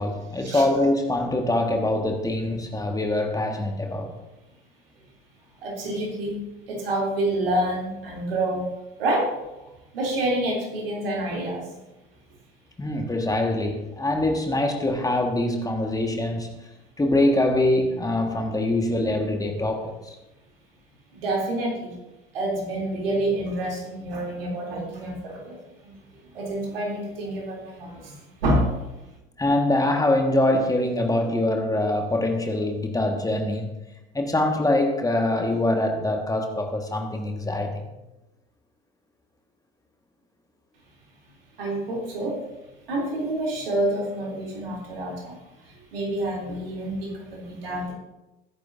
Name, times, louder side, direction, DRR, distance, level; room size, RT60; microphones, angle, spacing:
voice 1, 0.0-4.1 12.8-16.5 17.0-20.1 29.4-33.7 34.1-37.9, left 1 dB, 10° left, 3 dB, 1.7 m, -24 dB
voice 2, 5.6-6.4 6.7-8.7 9.0-9.4 9.9-11.7 21.1-22.0 22.3-25.6 25.8-25.9 26.3-28.7 41.6-42.4 42.9-45.4 45.6-47.9, right 1 dB, 70° right, -2 dB, 3.3 m, -28 dB
20.0 x 10.5 x 2.7 m, 0.99 s
figure-of-eight pair, 65°, 29 cm